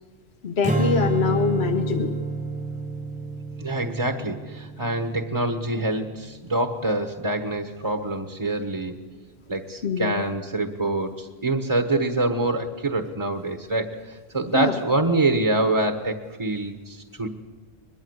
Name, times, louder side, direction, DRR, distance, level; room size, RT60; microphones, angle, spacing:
voice 1, 0.4-2.2 9.8-10.2 14.5-14.8, left 5 dB, 60° left, 5 dB, 1.3 m, -24 dB
Strum, 0.6-7.0, right 2 dB, 5° right, 1.3 m, -29 dB
voice 2, 3.6-9.0 9.5-17.3, right 2 dB, 25° right, 5 dB, 1.3 m, -25 dB
22.5 x 22.0 x 8.1 m, 1.3 s
omnidirectional pair, 1.3 m